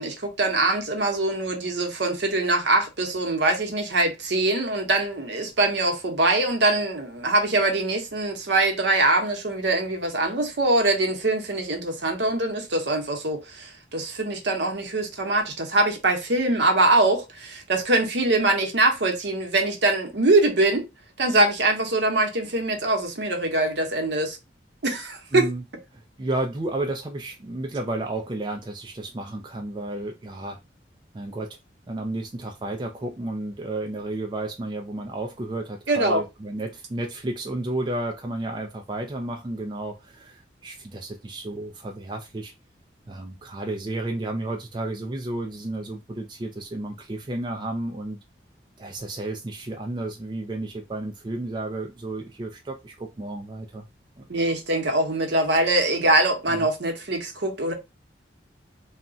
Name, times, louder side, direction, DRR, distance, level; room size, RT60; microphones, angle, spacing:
voice 1, 0.0-20.8 21.2-24.4 24.8-25.5 35.9-36.2 54.3-57.7, right 2 dB, 70° right, 0.8 m, -23 dB
voice 2, 25.3-25.6 25.9-30.6 31.1-31.6 31.9-42.5 43.1-48.2 48.8-53.9 54.2-54.3 56.5-56.7, right 2 dB, 25° right, 0.3 m, -32 dB
2.3 x 2.1 x 3.7 m
head